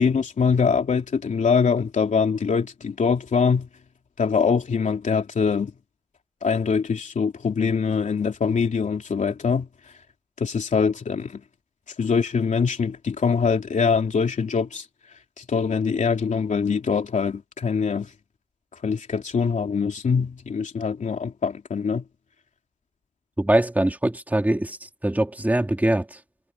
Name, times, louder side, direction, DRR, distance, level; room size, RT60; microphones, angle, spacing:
voice 1, 0.0-3.7 4.2-5.7 6.4-9.7 10.4-11.4 12.0-14.8 15.4-18.1 18.8-22.0, left 5 dB, 65° left, 3.1 m, -23 dB
voice 2, 23.4-24.8 25.0-26.1, right 1 dB, 10° right, 2.3 m, -22 dB
wide cardioid pair, 160°, 13 cm